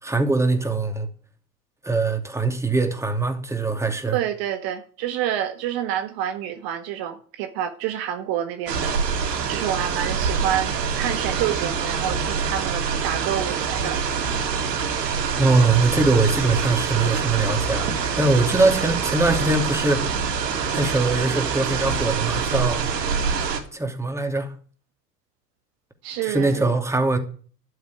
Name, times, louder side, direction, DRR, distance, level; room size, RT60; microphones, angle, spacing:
voice 1, 0.0-1.1 1.8-4.2 15.4-20.1 20.7-22.8 23.4-24.5 26.2-27.2, right 3 dB, 5° right, 2.6 m, -22 dB
voice 2, 4.1-9.0 9.5-14.0 26.0-26.7, right 11 dB, 45° right, 1.5 m, -28 dB
sound 1, 8.7-23.6, right 6 dB, 75° right, 3.3 m, -25 dB
11.5 x 8.3 x 9.9 m
hypercardioid pair, 90°, 49 cm